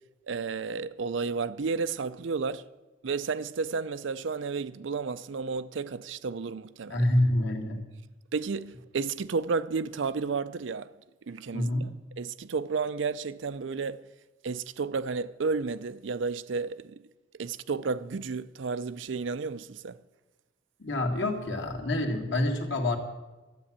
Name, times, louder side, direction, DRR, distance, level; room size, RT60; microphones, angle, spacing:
voice 1, 0.3-2.6 3.0-7.0 8.3-10.9 11.3-11.9 12.2-14.0 14.4-17.0 17.4-20.0, right 4 dB, 65° right, 0.5 m, -32 dB
voice 2, 6.9-7.8 11.5-11.9 20.8-23.0, left 1 dB, 65° left, 2.1 m, -27 dB
13.0 x 8.5 x 8.7 m
head